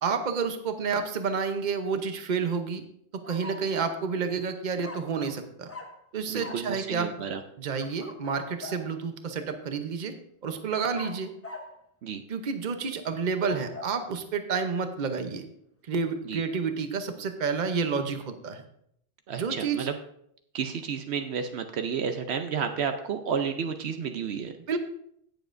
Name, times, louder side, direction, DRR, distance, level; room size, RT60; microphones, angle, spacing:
voice 1, 0.0-2.8 3.3-5.7 6.1-7.3 7.6-10.1 10.4-11.3 12.3-15.4 15.9-18.6 19.3-19.9 24.7-24.8, right 5 dB, 45° right, 8 dB, 0.9 m, -30 dB
sound 1, 3.2-4.0 4.8-5.4 5.7-6.0 6.4-6.7 7.7-8.9 10.9-11.8 13.2-14.0, left 2 dB, 15° left, 0.9 m, -43 dB
voice 2, 6.3-7.4 12.0-12.2 16.2-16.4 19.3-19.9 20.5-24.5, right 6 dB, 75° right, 7 dB, 0.9 m, -31 dB
16.5 x 7.1 x 2.6 m, 0.71 s
omnidirectional pair, 1.1 m